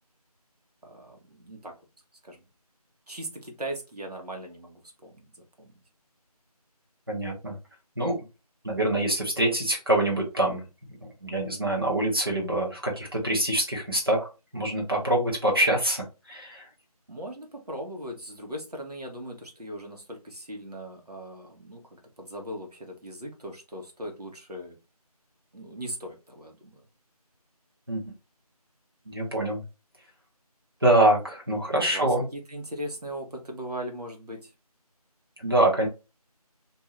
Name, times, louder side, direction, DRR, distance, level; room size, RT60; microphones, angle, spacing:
voice 1, 0.8-1.8 2.2-2.4 3.1-5.7 17.1-24.8 25.5-26.8 31.5-34.5, right 1 dB, 80° right, 1.1 m, -39 dB
voice 2, 7.1-7.5 8.0-8.2 8.6-10.7 11.2-14.3 14.5-16.7 27.9-28.0 29.1-29.6 30.8-32.2 35.4-35.9, right 1 dB, 35° right, 0.9 m, -25 dB
2.6 x 2.5 x 3.1 m
figure-of-eight pair, 175°, 20 cm